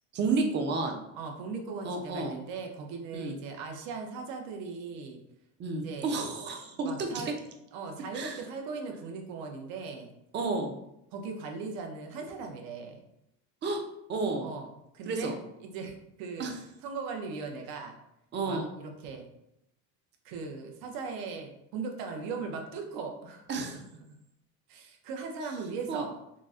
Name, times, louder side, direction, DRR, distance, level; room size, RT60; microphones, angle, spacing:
voice 1, 0.1-1.0 1.8-2.4 3.1-3.4 5.6-7.3 8.1-8.4 10.3-10.7 13.6-13.8 14.1-14.5 15.1-15.4 16.4-16.5 18.3-18.7 23.5-23.8 25.9-26.1, right 3 dB, 30° right, 3 dB, 0.4 m, -31 dB
voice 2, 1.2-5.2 5.8-6.2 6.8-7.3 7.7-10.1 11.1-13.0 14.4-14.7 14.9-16.5 16.8-17.9 18.4-19.3 20.2-23.5 23.9-24.0 24.7-26.1, right 4 dB, 75° right, 3 dB, 0.7 m, -39 dB
3.9 x 2.0 x 2.4 m, 0.82 s
cardioid pair, 145°, 36 cm